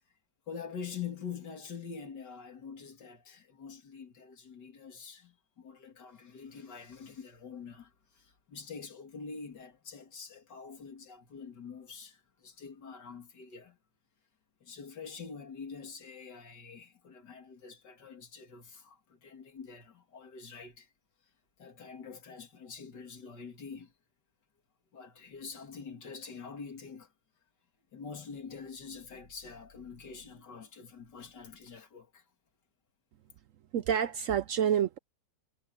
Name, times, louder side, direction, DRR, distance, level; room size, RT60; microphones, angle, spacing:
voice 1, 0.5-13.8 14.6-20.9 21.6-23.9 24.9-27.1 27.9-32.2, left 6 dB, 75° left, 3.0 m, -45 dB
voice 2, 33.7-35.0, right 9 dB, 70° right, 0.7 m, -28 dB
omnidirectional pair, 1.9 m